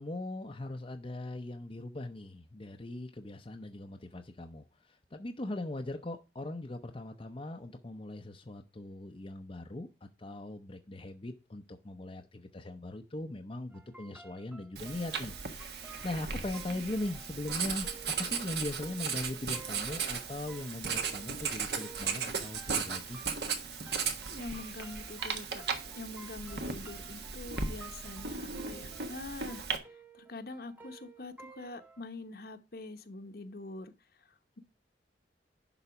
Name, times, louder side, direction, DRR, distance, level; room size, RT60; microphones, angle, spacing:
voice 1, 0.0-23.2, left 1 dB, 30° left, 0.7 m, -40 dB
sound 1, 13.7-32.0, right 4 dB, 10° right, 1.0 m, -54 dB
Writing, 14.8-29.8, right 5 dB, 65° right, 1.4 m, -36 dB
voice 2, 24.3-25.6 26.0-34.6, left 2 dB, 55° left, 1.0 m, -45 dB
11.0 x 4.1 x 5.8 m
head